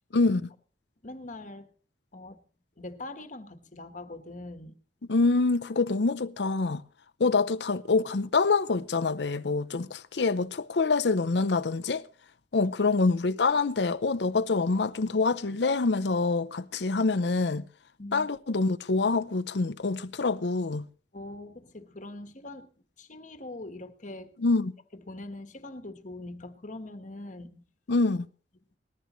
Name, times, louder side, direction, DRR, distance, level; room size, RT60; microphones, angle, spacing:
voice 1, 0.1-0.5 5.1-6.8 7.2-12.0 12.5-17.6 18.1-20.9 24.4-24.7 27.9-28.3, left 3 dB, 75° left, 0.7 m, -26 dB
voice 2, 1.0-1.7 2.1-2.4 2.8-4.8 7.2-7.3 12.6-12.7 18.0-18.3 21.1-22.7 23.0-24.3 24.9-27.6, left 2 dB, 45° left, 1.4 m, -42 dB
20.0 x 14.0 x 3.1 m
head